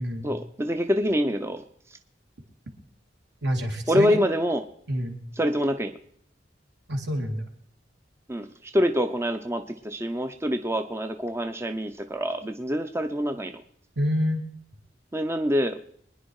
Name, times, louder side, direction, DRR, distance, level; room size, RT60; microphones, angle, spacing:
voice 1, 0.2-1.6 3.9-4.6 5.4-5.9 8.3-13.6 15.1-15.8, equal, 15° right, 8 dB, 0.6 m, -26 dB
voice 2, 3.4-4.2 4.9-5.2 6.9-7.4 14.0-14.4, equal, 70° right, 3 dB, 2.7 m, -27 dB
23.5 x 10.5 x 4.8 m, 0.67 s
head